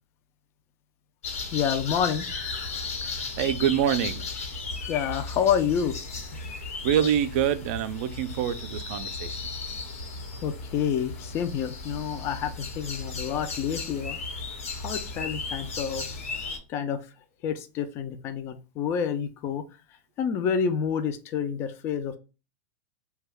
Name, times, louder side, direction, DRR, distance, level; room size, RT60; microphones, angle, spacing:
sound 1, 1.2-16.6, left 3 dB, 85° left, 1.1 m, -35 dB
voice 1, 1.5-2.2 4.9-6.0 10.4-14.2 14.7-16.1 16.7-17.0 17.4-19.6 20.2-22.2, left 8 dB, 35° left, 0.4 m, -28 dB
voice 2, 3.0-4.3 6.8-9.4, right 9 dB, 55° right, 0.4 m, -26 dB
2.9 x 2.3 x 3.4 m
supercardioid pair, 135°, 8 cm